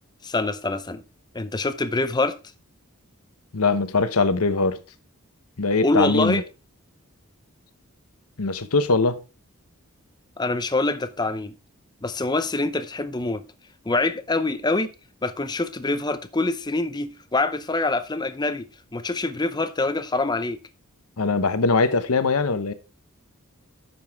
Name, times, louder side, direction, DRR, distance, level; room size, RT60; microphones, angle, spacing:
voice 1, 0.2-1.0 1.3-2.4 5.8-6.4 10.4-11.5 12.0-13.4 13.9-14.9 15.2-18.7 18.9-20.6, left 2 dB, 20° left, 0.7 m, -25 dB
voice 2, 3.5-4.8 5.6-6.4 8.4-9.2 21.2-22.7, left 3 dB, 85° left, 0.9 m, -21 dB
10.5 x 7.1 x 3.5 m
head